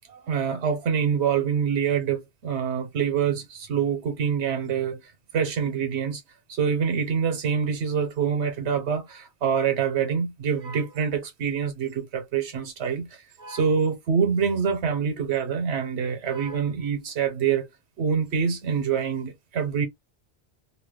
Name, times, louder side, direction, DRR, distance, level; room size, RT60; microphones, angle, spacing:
voice 1, 0.1-5.0 5.3-6.2 6.5-17.7 18.0-19.9, right 7 dB, 85° right, 1.0 m, -26 dB
2.7 x 2.2 x 3.5 m
omnidirectional pair, 1.1 m